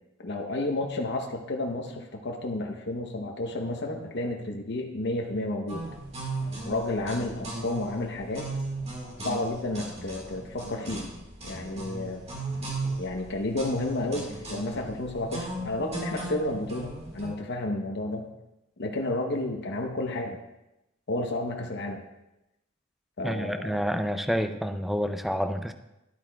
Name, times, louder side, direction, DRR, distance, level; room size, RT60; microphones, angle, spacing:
voice 1, 0.2-5.8 6.6-8.5 9.2-11.1 11.4-12.2 13.0-18.3 18.8-20.4 21.1-22.0 23.2-23.8, left 2 dB, 55° left, 2 dB, 0.8 m, -31 dB
sound 1, 5.7-17.3, right 2 dB, 30° right, 1.8 m, -37 dB
voice 2, 23.2-25.7, equal, ahead, 8 dB, 0.4 m, -28 dB
11.5 x 8.6 x 2.3 m, 0.93 s
head